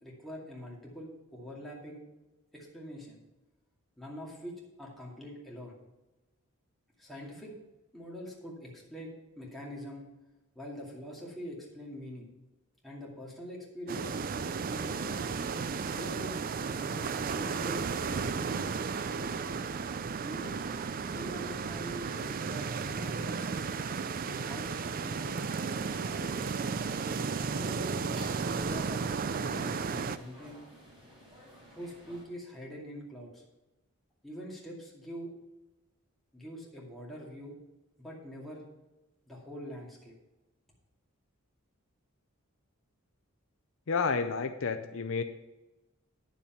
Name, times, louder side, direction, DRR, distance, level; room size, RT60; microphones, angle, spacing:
voice 1, 0.0-2.0 2.5-3.2 4.0-5.8 7.0-7.5 7.9-10.0 10.5-12.3 12.8-15.1 15.8-16.4 16.7-18.6 19.2-19.7 20.2-20.6 21.0-23.6 24.2-26.7 27.4-28.0 28.6-30.6 31.7-33.4 34.2-35.3 36.3-37.6 38.0-38.6 39.3-40.1, equal, ahead, -4 dB, 2.3 m, -44 dB
sound 1, 13.9-30.2, right 5 dB, 40° right, 0.4 m, -34 dB
sound 2, 20.4-32.2, equal, 25° right, 3.5 m, -54 dB
voice 2, 43.9-45.2, left 5 dB, 60° left, 9 dB, 0.5 m, -30 dB
9.9 x 7.1 x 5.8 m, 1.0 s
head